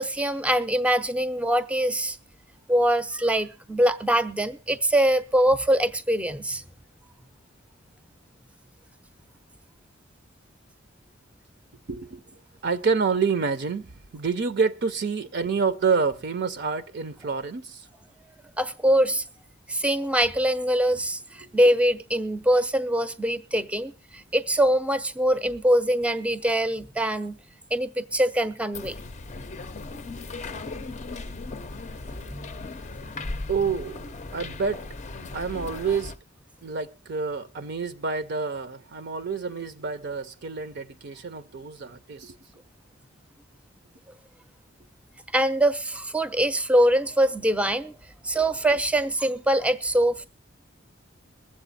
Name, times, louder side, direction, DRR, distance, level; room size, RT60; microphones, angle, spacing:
voice 1, 0.0-2.2 2.7-6.6 18.6-19.2 19.7-27.4 27.7-29.0 32.3-32.8 33.2-33.5 45.3-48.0 48.2-50.3, right 1 dB, 5° right, 0.6 m, -23 dB
voice 2, 11.9-12.2 12.6-17.9 33.5-34.9 35.3-36.1 36.6-42.4, right 5 dB, 55° right, 0.6 m, -28 dB
sound 1, 28.7-36.2, left 3 dB, 35° left, 0.5 m, -37 dB
22.0 x 7.6 x 4.1 m
head